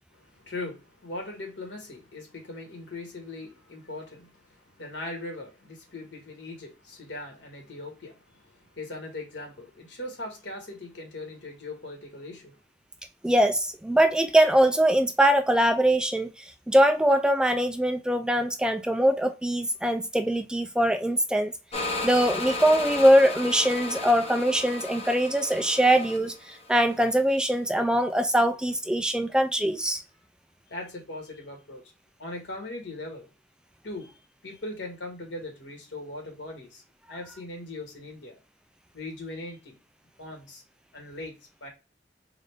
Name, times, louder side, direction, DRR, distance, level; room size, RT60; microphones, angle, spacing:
voice 1, 0.1-12.6 30.7-31.8 32.2-33.3 33.8-34.1 34.4-36.8 37.1-38.4 38.9-39.7 40.2-40.6 40.9-41.3 41.6-41.7, left 2 dB, 85° left, 1.7 m, -40 dB
voice 2, 13.2-21.5 22.0-30.0, right 1 dB, 5° right, 0.3 m, -22 dB
sound 1, 21.7-27.2, left 2 dB, 35° left, 0.8 m, -34 dB
3.9 x 2.5 x 3.4 m
head